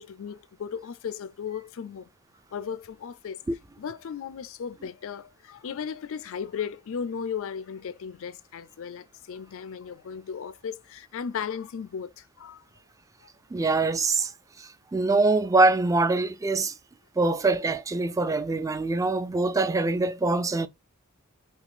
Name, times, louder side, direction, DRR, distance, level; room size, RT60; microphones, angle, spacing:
voice 1, 0.0-2.1 2.5-3.4 3.8-12.6 13.2-13.3, left 7 dB, 60° left, 0.4 m, -36 dB
voice 2, 13.5-14.3 14.6-16.7 17.2-20.7, right 3 dB, 15° right, 0.3 m, -24 dB
3.7 x 2.7 x 2.4 m
head